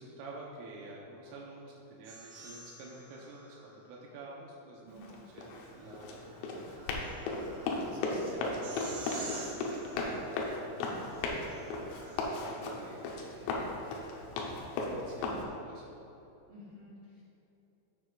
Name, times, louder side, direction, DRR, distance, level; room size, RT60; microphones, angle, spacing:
voice 1, 0.0-11.4 11.8-16.0, right 2 dB, 80° right, -3 dB, 3.4 m, -50 dB
sound 1, 2.0-4.0 5.5-12.6, right 2 dB, 60° right, 2.5 m, -49 dB
Run, 4.9-15.4, left 2 dB, 85° left, 3.6 m, -36 dB
voice 2, 11.1-11.5 16.5-17.2, left 1 dB, 45° right, -10 dB, 1.7 m, -51 dB
14.5 x 7.4 x 2.4 m, 2.9 s
omnidirectional pair, 5.7 m